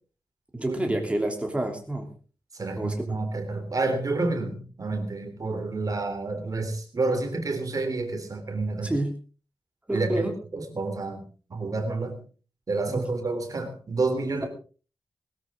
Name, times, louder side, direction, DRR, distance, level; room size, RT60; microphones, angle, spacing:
voice 1, 0.5-2.1 2.8-2.9 8.8-9.1 9.9-10.3 12.9-13.3 14.2-14.5, right 1 dB, 15° right, 2 dB, 3.3 m, -29 dB
voice 2, 2.5-8.9 9.9-10.3 10.5-11.2 11.5-12.2 12.7-14.5, right 3 dB, 45° right, 6 dB, 3.5 m, -29 dB
21.0 x 13.0 x 3.8 m, 0.38 s
wide cardioid pair, 155°, 9 cm